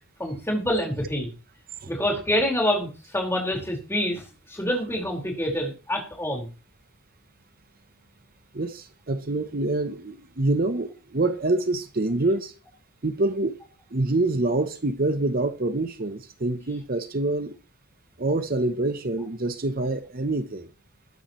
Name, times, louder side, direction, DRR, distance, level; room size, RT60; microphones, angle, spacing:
voice 1, 0.2-1.3 1.9-4.2 4.5-6.5, equal, 10° left, 4.8 m, -26 dB
voice 2, 8.5-12.5 13.0-13.6 13.9-17.6 18.2-20.7, right 2 dB, 40° right, 0.9 m, -26 dB
21.5 x 10.5 x 3.1 m
head